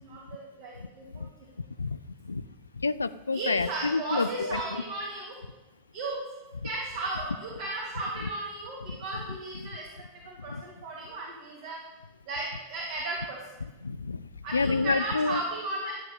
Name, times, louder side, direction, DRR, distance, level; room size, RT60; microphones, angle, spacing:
voice 1, 0.0-1.2 3.3-5.4 5.9-6.2 6.6-9.8 10.1-11.8 12.3-13.4 14.4-15.9, right 2 dB, 50° right, -4 dB, 3.3 m, -35 dB
voice 2, 2.8-4.6 13.8-15.4, left 4 dB, 75° left, 15 dB, 0.3 m, -28 dB
12.5 x 8.3 x 8.3 m, 1.1 s
figure-of-eight pair, 90°, 0 cm